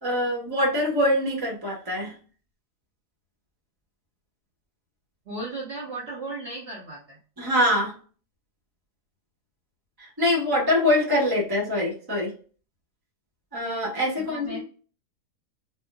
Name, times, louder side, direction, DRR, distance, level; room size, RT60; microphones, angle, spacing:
voice 1, 0.0-2.1 7.4-7.9 10.0-12.3 13.5-14.6, left 1 dB, 15° right, -2 dB, 1.0 m, -24 dB
voice 2, 5.3-7.2 14.1-14.6, right 2 dB, 45° right, -5 dB, 1.0 m, -35 dB
4.2 x 2.4 x 2.2 m, 0.40 s
omnidirectional pair, 1.6 m